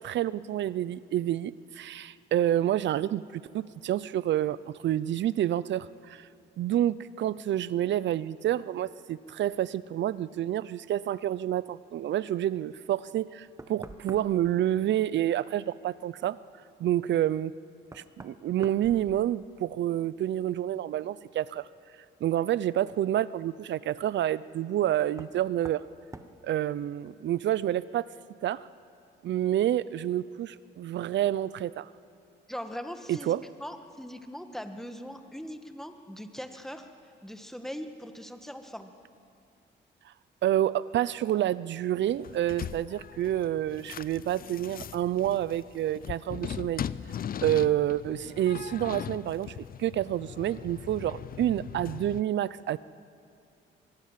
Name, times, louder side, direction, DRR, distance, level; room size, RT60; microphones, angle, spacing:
voice 1, 0.0-4.6 4.8-6.3 6.6-16.4 16.8-17.5 17.9-21.7 22.2-25.8 26.4-28.1 28.4-28.7 29.2-31.9 33.1-33.4 40.4-46.8 47.4-52.8, right 12 dB, 65° right, 18 dB, 0.7 m, -28 dB
Knock, 13.6-14.5 17.0-17.1 17.9-19.7 20.0-20.6 22.3-22.4 25.1-25.4 25.6-25.9 26.1-26.4, right 2 dB, 15° right, 1.3 m, -46 dB
voice 2, 32.5-36.9 37.2-38.9, equal, ahead, 6 dB, 1.9 m, -40 dB
sound 1, 42.1-52.2, left 9 dB, 45° left, 0.6 m, -40 dB
24.5 x 20.5 x 7.6 m, 2.6 s
cardioid pair, 90°, 20 cm